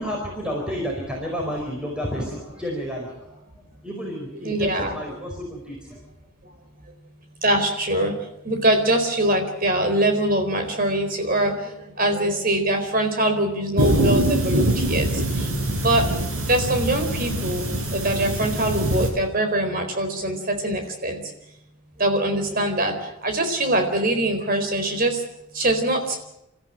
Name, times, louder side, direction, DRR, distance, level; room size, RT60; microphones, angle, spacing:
voice 1, 0.0-6.0, equal, 5° right, -2 dB, 4.8 m, -31 dB
voice 2, 4.4-5.0 7.4-8.1 8.4-15.1 15.4-16.1 16.5-17.7 17.9-21.2 22.0-25.2 25.5-26.2, right 1 dB, 40° right, 6 dB, 4.3 m, -23 dB
sound 1, 13.8-19.1, right 1 dB, 85° right, 5.9 m, -23 dB
29.5 x 14.0 x 9.0 m, 0.83 s
head